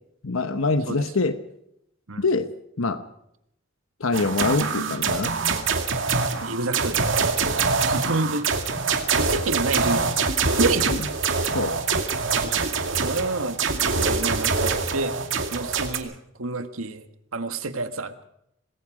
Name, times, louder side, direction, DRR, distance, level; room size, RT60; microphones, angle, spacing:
voice 1, 0.2-1.4 2.2-2.5 2.8-3.0 4.0-5.3 10.9-11.0 11.5-11.7, left 3 dB, 80° left, 10 dB, 1.1 m, -24 dB
sound 1, 4.1-16.0, right 4 dB, 65° right, 2.3 m, -24 dB
voice 2, 6.4-8.5 9.2-10.3 10.6-10.9 12.4-12.6 13.0-15.2 15.5-17.1 17.3-18.1, right 3 dB, 90° right, 9 dB, 1.7 m, -29 dB
26.5 x 20.5 x 5.0 m, 0.78 s
head